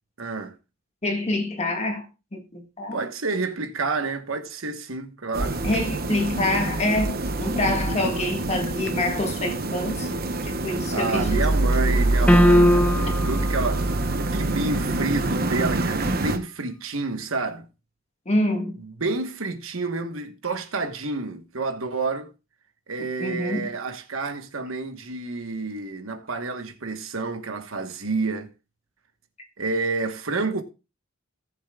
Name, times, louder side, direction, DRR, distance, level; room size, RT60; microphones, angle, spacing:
voice 1, 0.2-0.5 2.9-5.6 10.9-17.7 18.8-22.3 22.9-28.5 29.6-30.6, right 3 dB, 80° right, 1.3 m, -29 dB
voice 2, 1.0-2.0 2.3-3.0 5.6-10.1 10.4-11.5 18.2-18.8 23.2-23.7, left 1 dB, 35° left, 1.7 m, -26 dB
sound 1, 5.3-16.4, right 2 dB, 50° right, 1.0 m, -25 dB
sound 2, 12.3-13.3, left 1 dB, 5° left, 0.4 m, -17 dB
18.5 x 7.3 x 2.4 m
head